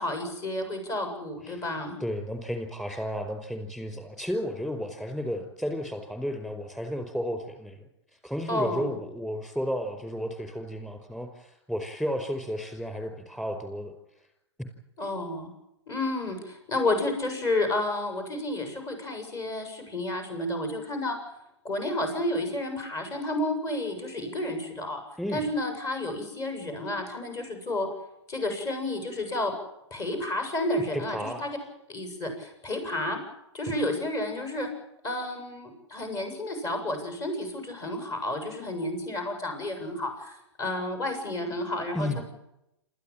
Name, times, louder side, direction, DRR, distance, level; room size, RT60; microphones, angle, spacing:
voice 1, 0.0-2.0 8.5-9.0 15.0-15.5 15.9-21.2 21.6-25.0 25.3-27.9 28.3-29.5 29.9-31.6 31.9-33.2 33.5-34.7 35.0-42.2, left 1 dB, 25° left, 5 dB, 8.0 m, -31 dB
voice 2, 2.0-7.8 8.2-13.9 25.2-25.5 31.1-31.4 41.9-42.2, equal, 5° left, 6 dB, 5.1 m, -33 dB
28.5 x 14.5 x 9.0 m, 0.86 s
hypercardioid pair, 120°, 15 cm